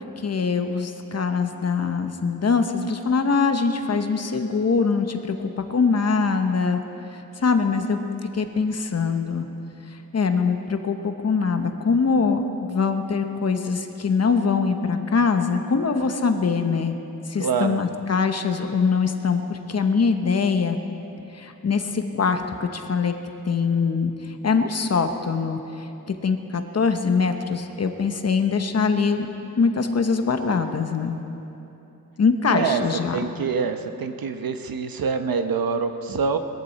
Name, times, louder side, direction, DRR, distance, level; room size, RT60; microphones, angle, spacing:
voice 1, 0.2-6.8 7.1-8.0 8.3-9.5 10.1-17.0 17.3-20.8 21.3-23.1 23.5-25.9 26.2-29.3 29.6-31.2 32.2-33.2, left 5 dB, 45° left, 7 dB, 0.9 m, -23 dB
voice 2, 17.4-17.8 32.5-32.8 33.1-36.4, right 5 dB, 85° right, 8 dB, 0.9 m, -25 dB
21.5 x 13.5 x 4.2 m, 2.9 s
wide cardioid pair, 170°, 34 cm